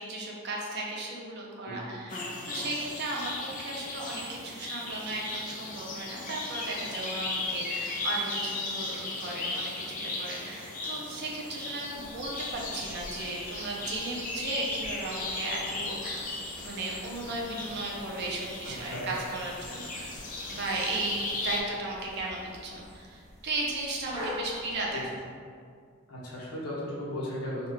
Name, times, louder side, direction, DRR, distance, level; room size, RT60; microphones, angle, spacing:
voice 1, 0.0-16.3 16.6-19.9 20.5-25.1, right 2 dB, 50° right, -2 dB, 0.5 m, -35 dB
sound 1, 2.1-21.6, left 2 dB, 35° left, 0.4 m, -37 dB
sound 2, 11.9-25.1, left 1 dB, 15° right, 0.9 m, -46 dB
voice 2, 26.1-27.7, left 1 dB, 85° left, -6 dB, 0.9 m, -36 dB
2.9 x 2.3 x 3.4 m, 2.2 s
head